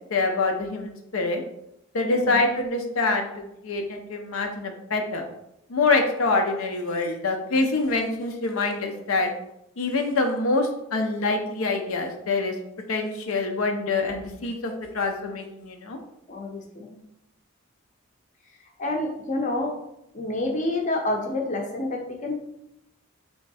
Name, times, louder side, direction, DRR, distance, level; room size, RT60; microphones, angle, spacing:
voice 1, 0.1-1.4 1.9-3.3 3.6-5.3 5.7-9.3 9.8-12.5 12.9-16.0, left 3 dB, 85° left, 4 dB, 0.6 m, -25 dB
voice 2, 16.3-16.9 18.8-19.7 20.1-22.4, left 2 dB, 35° left, 1 dB, 0.6 m, -28 dB
3.5 x 3.1 x 4.0 m, 0.82 s
head